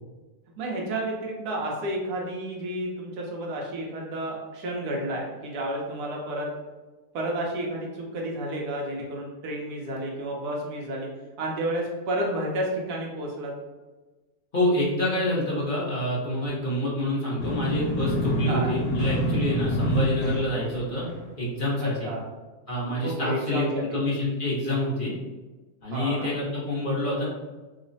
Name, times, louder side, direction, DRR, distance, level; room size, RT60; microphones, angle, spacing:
voice 1, 0.6-6.5 7.1-11.1 11.4-13.6 18.5-18.8 21.8-22.2 23.0-24.0 25.9-26.3, right 1 dB, 75° right, -1 dB, 1.2 m, -31 dB
voice 2, 14.5-21.1 21.4-22.1 22.7-25.1 25.8-27.3, left 1 dB, 40° left, -7 dB, 0.9 m, -27 dB
sound 1, 17.4-21.3, equal, 90° left, 1.2 m, -27 dB
3.2 x 2.1 x 3.8 m, 1.2 s
omnidirectional pair, 1.7 m